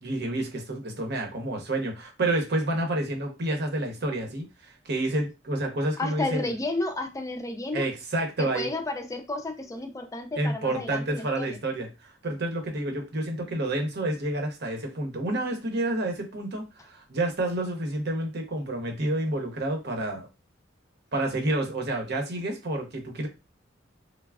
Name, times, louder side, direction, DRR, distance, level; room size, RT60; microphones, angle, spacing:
voice 1, 0.0-6.4 7.7-8.7 10.4-20.3 21.1-23.3, right 1 dB, 60° right, 0.8 m, -29 dB
voice 2, 6.0-7.9 8.4-11.6, left 2 dB, 15° left, 0.4 m, -32 dB
3.3 x 2.0 x 2.3 m
head